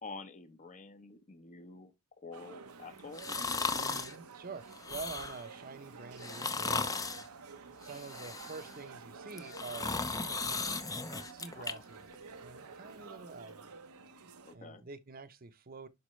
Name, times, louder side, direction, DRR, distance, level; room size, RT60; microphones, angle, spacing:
voice 1, 0.0-3.2 11.5-11.8 14.4-14.8, left 4 dB, 35° left, 0.9 m, -48 dB
sound 1, 2.3-14.6, right 5 dB, 90° right, 0.9 m, -50 dB
sound 2, 3.2-4.1 4.7-5.5 6.2-7.3 7.8-8.8 9.3-11.7 12.1-12.2, left 4 dB, 15° left, 0.6 m, -36 dB
voice 2, 3.7-7.3 7.8-12.0 12.4-13.7 14.5-15.9, right 4 dB, 40° right, 0.8 m, -47 dB
11.5 x 4.2 x 3.1 m
head